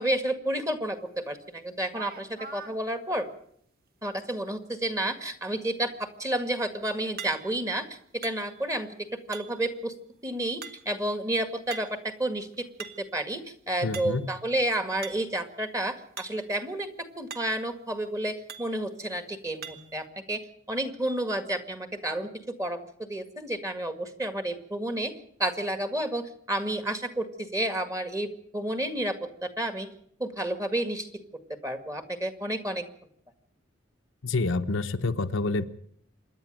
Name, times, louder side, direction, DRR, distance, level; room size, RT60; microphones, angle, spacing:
voice 1, 0.0-3.3 4.0-8.9 9.3-9.9 10.2-12.7 13.0-16.9 17.2-20.4 20.7-22.3 22.6-25.1 25.4-29.9 30.2-31.1 31.6-32.9, right 1 dB, 15° right, 8 dB, 1.9 m, -31 dB
sound 1, 1.3-1.4 1.9-2.8 7.2-7.7 8.2-8.8 9.3-9.7 10.6-11.1 11.7-12.1 12.5-13.2 13.9-14.4 15.0-15.4 16.2-16.5 16.8-16.9 17.3-17.7 18.5-18.8 19.6-20.0, right 6 dB, 50° right, 1.7 m, -43 dB
voice 2, 13.8-14.3 34.2-35.7, left 3 dB, 70° left, 6 dB, 0.9 m, -27 dB
26.5 x 11.0 x 9.1 m, 0.67 s
head